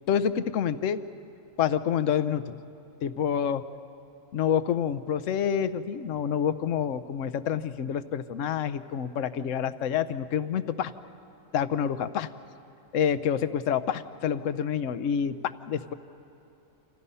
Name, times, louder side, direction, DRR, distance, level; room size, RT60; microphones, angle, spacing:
voice 1, 0.1-1.0 1.6-2.6 3.0-3.6 4.3-10.9 11.5-12.3 12.9-15.9, left 8 dB, 70° left, 13 dB, 1.1 m, -27 dB
29.0 x 27.0 x 5.6 m, 2.8 s
omnidirectional pair, 1.4 m